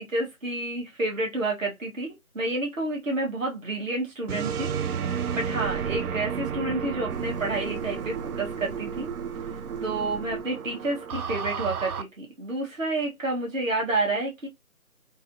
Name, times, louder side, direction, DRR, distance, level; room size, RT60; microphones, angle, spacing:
voice 1, 0.0-4.7 5.3-9.1 9.8-14.5, right 2 dB, 60° right, 1.4 m, -29 dB
sound 1, 4.3-12.0, right 7 dB, 80° right, 0.5 m, -32 dB
sound 2, 7.1-12.0, right 1 dB, 40° right, 0.7 m, -45 dB
3.1 x 2.8 x 2.6 m
figure-of-eight pair, 165°, 44 cm